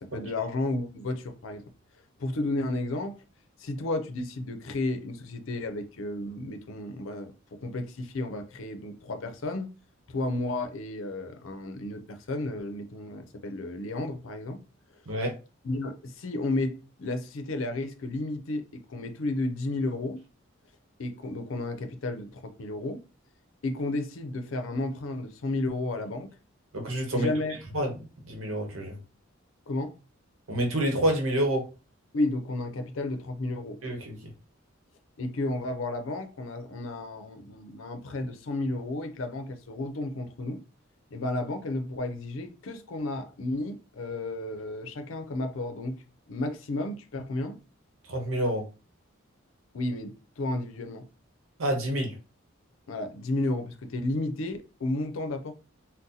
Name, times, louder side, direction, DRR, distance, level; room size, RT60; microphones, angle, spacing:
voice 1, 0.0-1.7 2.2-3.2 3.6-9.7 10.1-14.6 15.6-20.2 21.0-23.0 23.6-26.3 27.1-27.6 29.7-29.9 32.1-33.8 35.2-40.6 41.1-46.0 46.3-47.6 49.7-51.1 52.9-55.5, left 2 dB, 80° left, 0.5 m, -32 dB
voice 2, 26.7-27.3 27.7-27.9 28.3-28.9 30.5-31.6 33.8-34.3 48.1-48.6 51.6-52.1, right 1 dB, 85° right, 0.9 m, -28 dB
3.9 x 2.1 x 2.6 m
head